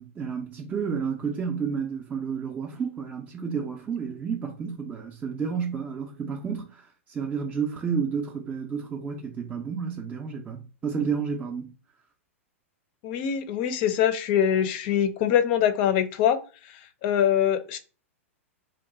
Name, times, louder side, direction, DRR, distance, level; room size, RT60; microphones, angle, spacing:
voice 1, 0.0-11.7, right 6 dB, 20° right, 0.5 m, -31 dB
voice 2, 13.0-16.4 17.0-17.8, left 9 dB, 45° left, 0.5 m, -23 dB
2.9 x 2.2 x 3.6 m
hypercardioid pair, 105°, 8 cm